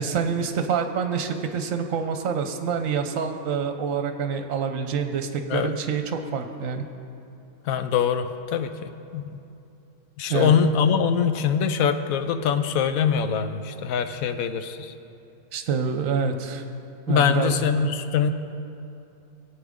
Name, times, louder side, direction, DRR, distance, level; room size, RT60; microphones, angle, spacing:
voice 1, 0.0-6.8 10.3-10.6 15.5-16.6 17.1-17.5 17.8-17.9, right 6 dB, 70° right, 7 dB, 1.1 m, -26 dB
voice 2, 7.6-9.4 10.2-14.9 17.1-18.3, left 7 dB, 75° left, 9 dB, 1.0 m, -23 dB
17.5 x 8.4 x 3.7 m, 2.7 s
omnidirectional pair, 1.5 m